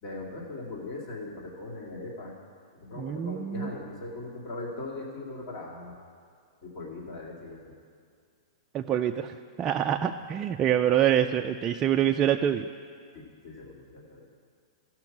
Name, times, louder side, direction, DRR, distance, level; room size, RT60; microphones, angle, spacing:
voice 1, 0.0-2.3 2.7-6.0 6.6-7.7 9.9-10.1 13.1-14.3, left 2 dB, 45° left, -2 dB, 2.4 m, -40 dB
voice 2, 3.0-3.7 8.7-12.7, right 10 dB, 25° right, 5 dB, 0.3 m, -26 dB
14.5 x 6.1 x 6.0 m, 2.1 s
hypercardioid pair, 140°, 3 cm